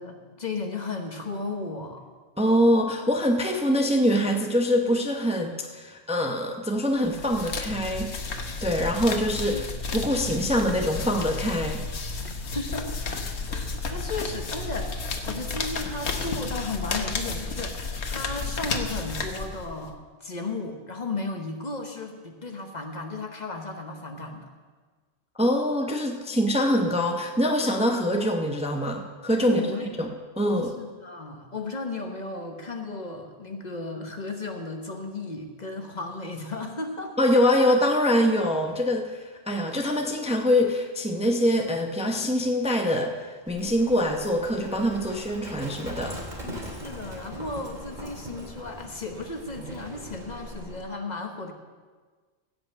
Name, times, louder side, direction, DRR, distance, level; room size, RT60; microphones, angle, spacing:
voice 1, 0.0-2.0 9.4-9.6 12.5-13.0 13.5-17.8 18.1-24.5 29.4-29.9 30.8-37.3 46.7-51.5, left 3 dB, 40° left, 4 dB, 1.2 m, -35 dB
voice 2, 2.4-8.1 8.6-9.6 9.9-11.8 25.4-29.6 30.0-30.1 30.4-30.7 37.2-46.2, equal, 5° right, 3 dB, 0.8 m, -24 dB
sound 1, 7.0-19.9, left 3 dB, 85° left, 1.3 m, -32 dB
Livestock farm animals working animals, 43.5-50.8, equal, 45° right, 2.5 m, -40 dB
16.0 x 5.6 x 7.8 m, 1.4 s
omnidirectional pair, 1.1 m